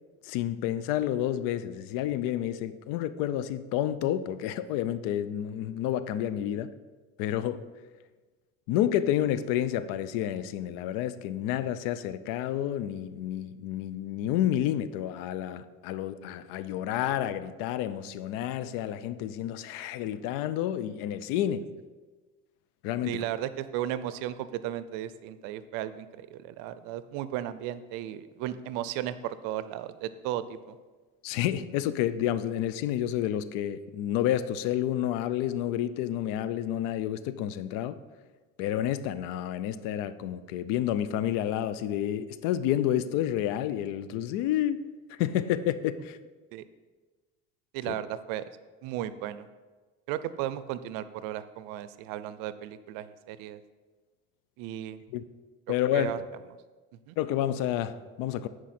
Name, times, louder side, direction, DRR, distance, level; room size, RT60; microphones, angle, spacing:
voice 1, 0.2-6.7 7.2-7.7 8.7-21.7 22.8-23.2 31.2-38.0 38.6-44.8 45.1-46.2 47.9-48.0 55.1-55.2 55.7-56.2 57.2-58.5, left 11 dB, 90° left, 0.5 m, -30 dB
voice 2, 23.0-30.8 46.5-46.6 47.7-48.4 48.8-49.5 50.1-53.6 54.6-55.0 55.9-56.2 57.1-57.2, right 12 dB, 90° right, 0.5 m, -35 dB
10.0 x 4.7 x 4.2 m
supercardioid pair, 90°, 32 cm